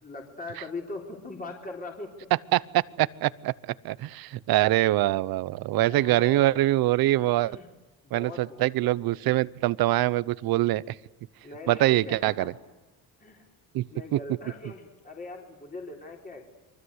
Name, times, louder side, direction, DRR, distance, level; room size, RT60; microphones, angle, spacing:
voice 1, 0.0-2.1 5.7-6.5 7.4-7.7 8.0-9.2 11.4-12.5 13.2-13.5 13.9-16.5, left 2 dB, 20° left, 1 dB, 4.0 m, -41 dB
voice 2, 2.5-7.6 8.1-10.9 11.7-12.5 13.7-14.2, right 16 dB, 70° right, 19 dB, 0.9 m, -24 dB
29.0 x 23.5 x 8.2 m, 1.1 s
cardioid pair, 125°, 37 cm